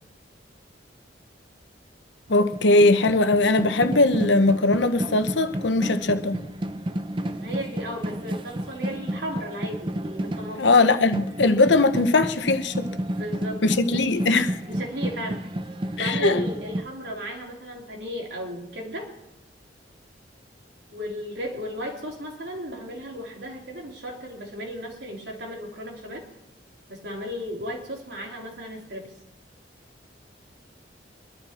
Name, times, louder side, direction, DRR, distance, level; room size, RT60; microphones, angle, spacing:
voice 1, 2.3-6.4 10.6-12.9 13.6-14.6 16.0-16.4, left 2 dB, 80° left, 0.9 m, -20 dB
sound 1, 2.3-16.8, right 1 dB, 25° right, 0.6 m, -31 dB
voice 2, 7.4-10.7 12.9-13.6 14.7-15.5 16.0-19.1 20.9-26.2 26.9-29.1, equal, 70° right, 3.1 m, -35 dB
23.0 x 11.5 x 4.3 m
head